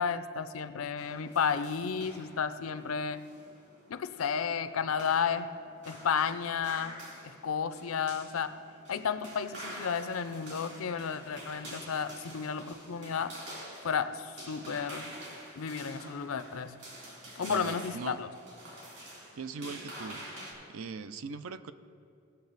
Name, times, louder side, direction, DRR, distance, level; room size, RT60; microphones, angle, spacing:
voice 1, 0.0-3.2 3.9-5.6 5.9-7.0 7.2-8.6 8.9-13.4 13.8-15.1 15.6-16.8 17.4-18.3, left 6 dB, 80° left, 11 dB, 0.5 m, -32 dB
sound 1, 1.0-20.5, right 1 dB, 55° right, 3.1 m, -48 dB
voice 2, 17.5-18.2 19.4-20.2 20.7-21.7, right 5 dB, 75° right, 12 dB, 0.5 m, -40 dB
18.5 x 6.9 x 4.0 m, 2.5 s
head